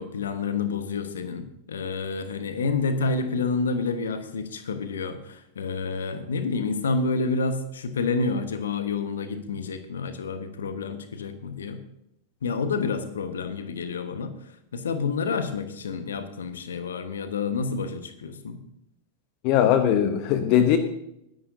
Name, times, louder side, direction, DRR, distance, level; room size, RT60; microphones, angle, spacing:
voice 1, 0.0-11.8 12.4-14.3 14.7-18.6, left 4 dB, 65° left, 10 dB, 1.3 m, -29 dB
voice 2, 19.4-20.8, left 10 dB, 45° left, 9 dB, 1.0 m, -20 dB
20.5 x 10.5 x 2.7 m, 0.78 s
figure-of-eight pair, 90°, 0 cm